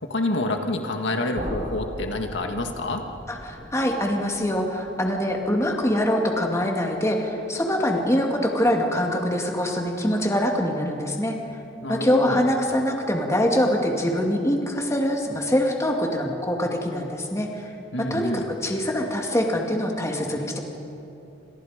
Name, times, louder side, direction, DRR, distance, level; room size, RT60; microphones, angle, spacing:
voice 1, 0.0-3.0 11.8-12.4 17.9-18.5, left 2 dB, 70° left, 4 dB, 1.8 m, -27 dB
sound 1, 1.3-7.2, equal, 45° right, 5.4 m, -39 dB
voice 2, 3.3-11.4 11.9-17.7 18.0-20.6, equal, 15° left, 1 dB, 2.4 m, -24 dB
29.0 x 27.0 x 5.1 m, 3.0 s
head